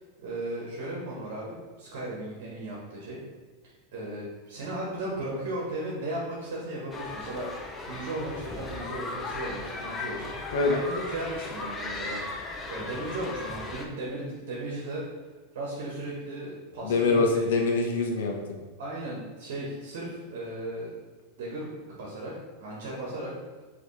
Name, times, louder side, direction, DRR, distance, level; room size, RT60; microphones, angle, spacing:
voice 1, 0.2-3.2 3.9-7.5 7.8-12.2 12.7-15.0 15.5-17.4 18.8-20.9 21.4-22.3 22.6-23.3, right 1 dB, 65° right, -4 dB, 1.3 m, -36 dB
sound 1, 6.9-13.9, left 3 dB, 15° left, 0.4 m, -37 dB
voice 2, 16.8-18.6, left 3 dB, 80° left, 2 dB, 0.8 m, -24 dB
5.1 x 3.0 x 3.2 m, 1.4 s
supercardioid pair, 165°, 0 cm